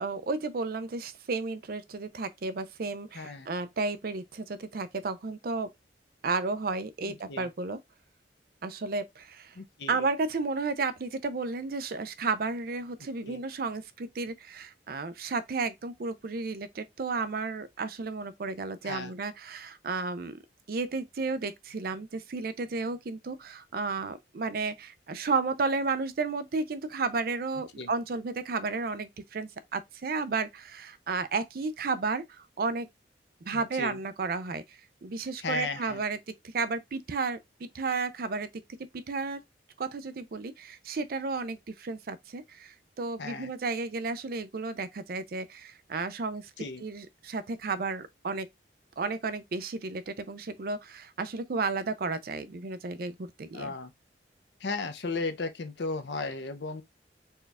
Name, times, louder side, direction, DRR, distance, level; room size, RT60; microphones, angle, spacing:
voice 1, 0.0-5.7 6.2-7.8 8.6-9.5 9.9-20.4 20.7-32.9 33.5-36.2 36.5-38.5 38.9-39.4 39.8-46.5 46.8-48.5 49.0-53.7, right 4 dB, 55° right, 0.5 m, -33 dB
voice 2, 3.1-3.5 7.0-7.5 9.5-10.1 13.0-13.4 18.8-19.1 27.8-27.9 33.5-34.0 35.4-36.0 43.2-43.5 46.6-46.8 53.5-53.9 54.6-56.8, left 3 dB, 70° left, 0.6 m, -35 dB
4.4 x 2.4 x 3.4 m
head